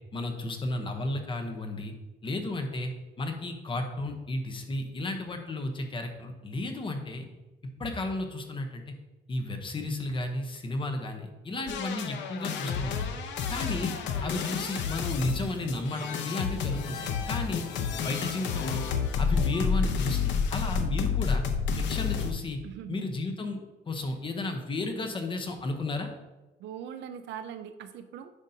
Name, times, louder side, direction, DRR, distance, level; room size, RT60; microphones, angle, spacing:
voice 1, 0.1-1.9 2.2-2.9 3.2-7.3 7.8-8.8 9.3-13.1 13.5-13.9 14.2-17.6 18.0-18.8 19.2-21.4 21.7-22.6 22.9-23.6 23.9-26.1, left 2 dB, 30° left, 5 dB, 0.9 m, -33 dB
sound 1, 11.7-22.3, left 6 dB, 85° left, 0.7 m, -30 dB
voice 2, 22.6-23.0 26.6-28.3, right 9 dB, 80° right, 10 dB, 0.5 m, -41 dB
9.8 x 5.1 x 2.8 m, 1.1 s
cardioid pair, 135°, 18 cm